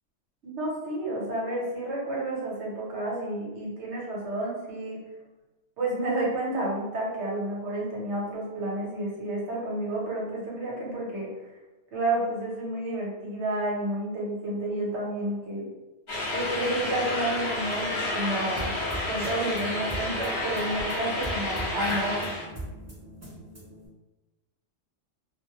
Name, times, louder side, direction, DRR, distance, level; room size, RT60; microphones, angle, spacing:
voice 1, 0.4-5.0 5.8-11.3 11.9-15.6 16.3-18.7 19.1-22.3, right 1 dB, 65° right, -4 dB, 1.0 m, -30 dB
sound 1, 16.1-22.4, left 2 dB, 45° left, 0.9 m, -30 dB
sound 2, 18.6-23.9, right 1 dB, 20° right, 0.4 m, -40 dB
2.3 x 2.1 x 2.8 m, 1.1 s
omnidirectional pair, 1.3 m